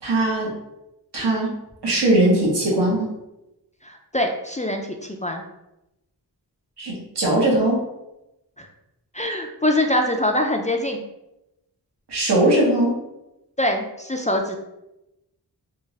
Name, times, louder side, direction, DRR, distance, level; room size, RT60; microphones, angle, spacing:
voice 1, 0.0-0.5 1.1-1.5 1.8-3.2 6.8-7.8 12.1-12.9, right 1 dB, 85° right, -4 dB, 1.3 m, -20 dB
voice 2, 3.8-5.4 8.6-8.7 9.1-11.0 13.6-14.6, left 1 dB, 20° left, 3 dB, 0.3 m, -24 dB
3.5 x 2.5 x 3.2 m, 0.91 s
wide cardioid pair, 60°, 40 cm